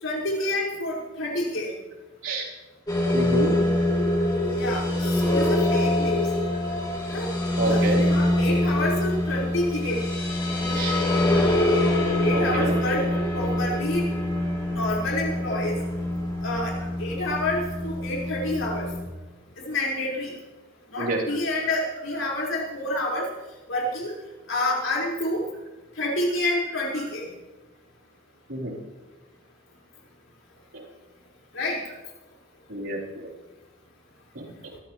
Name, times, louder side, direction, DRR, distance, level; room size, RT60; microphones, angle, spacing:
voice 1, 0.0-1.7 4.6-6.3 7.1-7.3 7.6-10.0 10.6-10.8 12.2-13.0 13.3-14.1 14.7-15.7 16.4-16.7 17.0-18.8 19.6-20.3 20.9-23.3 23.7-24.1 24.5-25.4 26.0-27.2 31.5-31.8, left 1 dB, 85° left, -4 dB, 4.9 m, -28 dB
sound 1, 2.9-19.0, left 1 dB, 20° left, 5.1 m, -25 dB
voice 2, 3.1-3.6 7.6-8.1 10.7-11.0 12.3-12.8 21.0-21.2 22.2-22.4 27.0-27.1 28.5-28.8 30.7-30.8 32.7-33.3 34.3-34.7, right 2 dB, 80° right, -4 dB, 3.8 m, -29 dB
24.5 x 14.0 x 3.2 m, 1.2 s
head